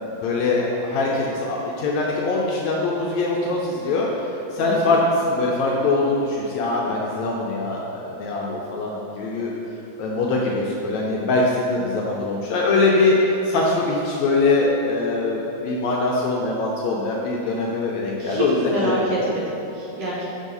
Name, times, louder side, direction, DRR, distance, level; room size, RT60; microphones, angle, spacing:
voice 1, 0.2-4.1 4.5-5.0 5.2-9.5 10.0-13.2 13.5-19.0, left 3 dB, 75° left, -3 dB, 1.7 m, -22 dB
voice 2, 4.6-4.9 18.2-20.2, right 1 dB, 65° right, -7 dB, 1.7 m, -26 dB
6.3 x 3.6 x 5.4 m, 2.9 s
omnidirectional pair, 3.6 m